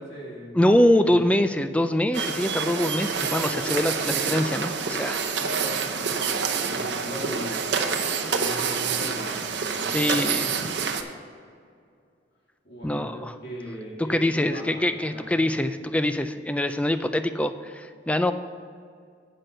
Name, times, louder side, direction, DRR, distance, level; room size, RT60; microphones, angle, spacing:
voice 1, 0.0-0.6 0.9-1.4 5.4-7.6 8.3-9.5 9.7-10.1 12.6-15.5, equal, 60° left, -4 dB, 2.6 m, -39 dB
voice 2, 0.5-5.2 9.9-10.6 12.8-13.4 14.1-18.3, left 1 dB, 5° left, 10 dB, 0.3 m, -24 dB
sound 1, 2.1-11.0, right 5 dB, 70° right, 0.8 m, -27 dB
8.2 x 6.0 x 6.5 m, 2.3 s
head